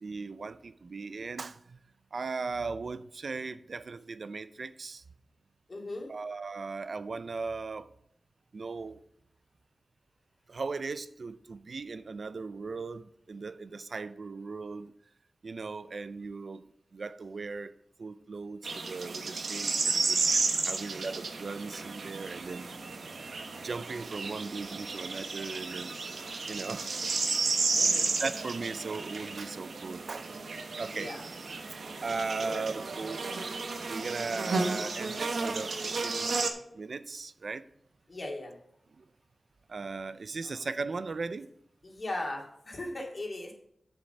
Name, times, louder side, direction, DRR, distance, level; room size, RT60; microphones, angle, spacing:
voice 1, 0.0-1.8 2.1-5.0 6.1-7.9 8.5-9.0 10.5-14.9 15.4-16.7 16.9-20.2 20.6-22.7 23.6-25.9 26.5-27.1 27.9-30.3 30.8-31.1 32.0-33.2 33.9-35.7 36.0-36.4 36.7-37.6 38.9-39.0 39.7-41.5, right 4 dB, 65° right, 0.5 m, -38 dB
voice 2, 5.7-6.1 27.8-28.1 30.9-31.2 32.4-32.7 32.9-33.2 38.1-38.6 40.4-40.6 41.8-43.5, left 2 dB, 50° left, 2.4 m, -38 dB
sound 1, 18.6-36.5, right 4 dB, 90° right, 1.1 m, -33 dB
8.0 x 6.9 x 5.7 m
wide cardioid pair, 95°, 0 cm